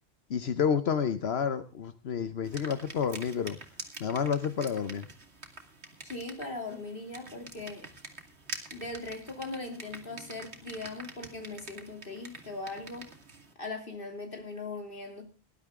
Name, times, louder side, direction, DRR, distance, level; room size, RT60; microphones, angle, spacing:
voice 1, 0.3-3.6 4.0-5.1, left 7 dB, 75° left, 11 dB, 1.2 m, -29 dB
sound 1, 2.4-13.5, right 3 dB, 85° right, 2.4 m, -46 dB
voice 2, 6.0-7.9 8.7-13.1 13.6-15.2, left 2 dB, 60° left, 3 dB, 3.3 m, -39 dB
19.0 x 11.5 x 3.7 m, 0.32 s
omnidirectional pair, 1.1 m